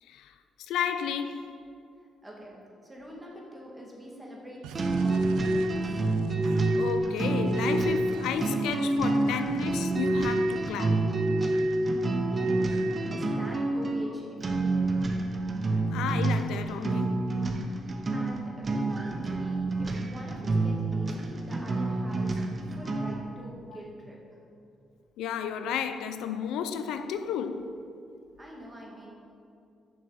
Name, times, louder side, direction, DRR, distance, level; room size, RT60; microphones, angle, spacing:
voice 1, 0.0-1.6 6.8-11.1 15.9-17.4 25.2-27.8, left 8 dB, 90° left, 0.4 m, -32 dB
voice 2, 2.2-2.6 2.8-5.9 12.2-12.8 13.1-15.0 17.7-22.4 22.7-24.4 28.4-29.1, equal, 15° right, 2.0 m, -45 dB
sound 1, 4.6-6.8 7.5-7.8 8.1-10.0, right 7 dB, 90° right, 0.4 m, -46 dB
sound 2, 4.7-23.3, right 2 dB, 35° right, 0.8 m, -28 dB
6.9 x 6.2 x 6.2 m
cardioid pair, 90°, 0 cm